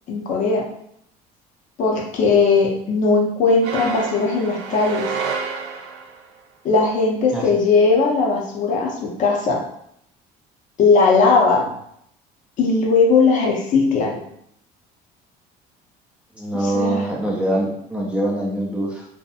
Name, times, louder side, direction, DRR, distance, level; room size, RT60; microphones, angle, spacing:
voice 1, 0.1-0.7 1.8-5.1 6.6-9.6 10.8-11.7 12.6-14.2 16.6-17.0, left 4 dB, 50° left, 0 dB, 0.6 m, -18 dB
sound 1, 3.6-6.3, right 5 dB, 80° right, 0.4 m, -29 dB
voice 2, 16.3-19.1, right 1 dB, 5° right, -4 dB, 0.5 m, -24 dB
2.7 x 2.5 x 2.4 m, 0.73 s
cardioid pair, 135°, 17 cm